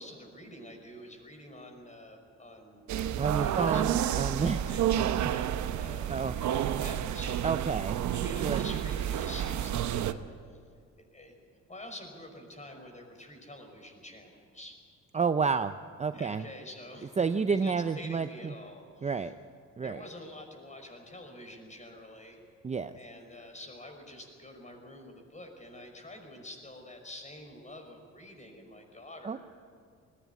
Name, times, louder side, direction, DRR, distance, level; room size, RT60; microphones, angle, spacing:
voice 1, 0.0-2.8 3.2-4.0 4.4-7.4 8.1-10.2 10.5-10.6 11.1-11.4 11.7-14.8 16.1-19.1 19.8-22.4 23.0-29.4, left 1 dB, 25° left, 3 dB, 5.6 m, -47 dB
sound 1, 2.9-10.1, right 10 dB, 70° right, 0.9 m, -30 dB
voice 2, 3.2-4.6 6.1-6.4 7.4-8.0 8.4-8.6 15.1-16.5 17.2-18.5 19.0-19.3 19.8-20.0 22.6-22.9 29.2-29.4, right 5 dB, 25° right, 9 dB, 0.6 m, -30 dB
20.5 x 16.0 x 9.6 m, 2.2 s
cardioid pair, 90°, 30 cm